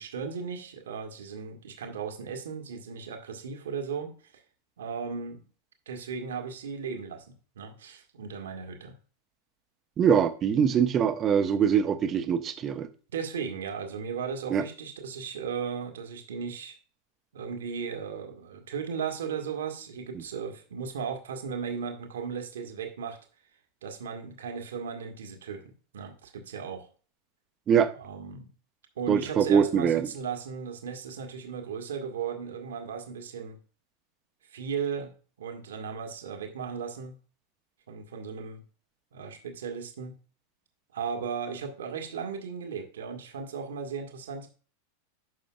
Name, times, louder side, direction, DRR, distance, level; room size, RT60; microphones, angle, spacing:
voice 1, 0.0-4.4 4.8-5.4 5.9-8.9 13.1-16.8 17.3-23.2 23.8-26.9 27.9-28.5 29.0-33.6 34.5-35.1 35.4-37.2 37.9-38.6 39.1-40.2 40.9-44.5, right 6 dB, 65° right, 1.5 m, -36 dB
voice 2, 10.0-12.9 14.5-14.6 27.7-27.9 29.1-30.1, right 7 dB, 25° right, 0.9 m, -23 dB
10.0 x 6.4 x 2.4 m
figure-of-eight pair, 90°, 0 cm